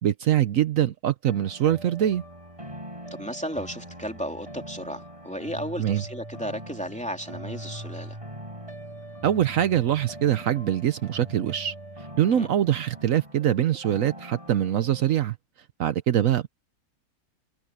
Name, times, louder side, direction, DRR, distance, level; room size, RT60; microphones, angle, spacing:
voice 1, 0.0-2.2 5.8-6.0 9.2-15.4 15.8-16.5, right 11 dB, 70° right, 1.1 m, -23 dB
sound 1, 1.3-15.2, right 1 dB, 20° right, 6.8 m, -42 dB
voice 2, 3.1-8.2 12.3-12.5, equal, 5° left, 2.8 m, -34 dB
omnidirectional pair, 1.5 m